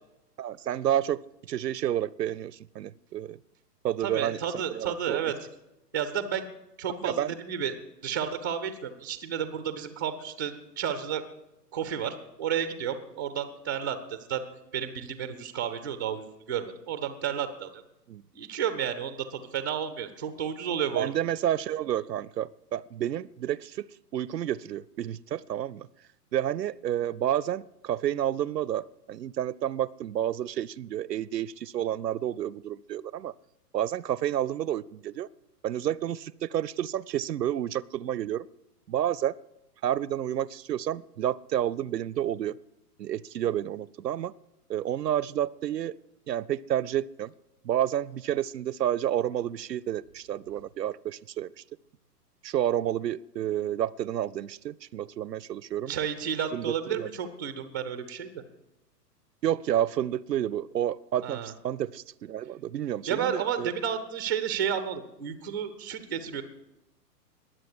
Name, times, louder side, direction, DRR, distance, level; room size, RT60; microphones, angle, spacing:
voice 1, 0.4-1.2 1.5-3.4 3.8-5.3 7.0-7.3 18.1-18.2 20.9-25.9 26.3-33.3 33.7-35.3 35.6-38.5 38.9-39.3 39.8-42.6 43.0-44.3 44.7-46.0 46.3-47.3 47.6-51.5 52.4-55.9 56.5-57.1 59.4-63.7, right 11 dB, 80° right, 23 dB, 0.5 m, -30 dB
voice 2, 4.0-5.3 5.9-6.5 6.8-7.7 8.0-11.2 11.7-14.4 14.7-17.8 18.3-21.1 55.9-58.4 61.2-61.5 63.1-66.4, right 8 dB, 15° right, 10 dB, 0.4 m, -32 dB
21.0 x 7.7 x 4.8 m, 0.90 s
figure-of-eight pair, 120°, 49 cm